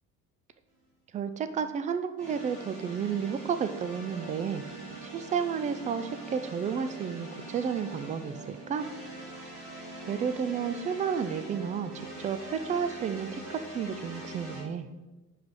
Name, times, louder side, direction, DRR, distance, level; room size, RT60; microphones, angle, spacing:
voice 1, 1.1-4.6 5.0-8.9 10.1-14.9, right 7 dB, 15° right, 10 dB, 0.4 m, -32 dB
sound 1, 2.2-14.6, right 2 dB, 75° right, 2.6 m, -43 dB
10.5 x 3.9 x 4.7 m, 1.1 s
figure-of-eight pair, 60°, 47 cm